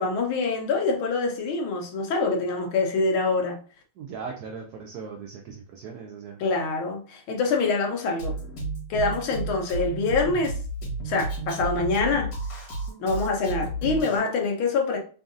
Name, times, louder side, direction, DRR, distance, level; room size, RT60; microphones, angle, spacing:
voice 1, 0.0-3.6 6.4-8.3 8.9-10.6 11.0-12.3 13.0-15.0, left 3 dB, 90° left, 1.7 m, -25 dB
voice 2, 4.0-6.4, right 5 dB, 70° right, 0.9 m, -38 dB
Drum kit, 8.2-14.2, right 2 dB, 60° left, 2.1 m, -32 dB
3.9 x 3.6 x 2.6 m
omnidirectional pair, 2.2 m